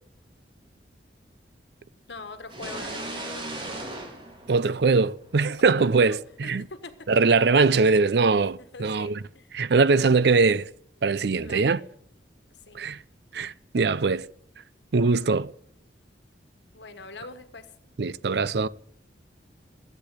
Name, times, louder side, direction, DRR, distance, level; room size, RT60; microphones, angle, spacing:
voice 1, 2.1-3.5 5.8-6.1 6.4-7.1 8.7-9.5 11.4-11.8 12.5-12.8 16.7-17.7, left 3 dB, 75° left, 1.4 m, -42 dB
sound 1, 2.5-5.3, right 2 dB, 30° right, 2.9 m, -37 dB
voice 2, 4.5-6.6 7.1-9.2 9.5-10.7 11.0-11.8 12.7-13.0 13.3-14.3 14.9-15.5 18.0-18.7, right 4 dB, 65° right, 0.5 m, -22 dB
15.5 x 8.4 x 8.3 m
head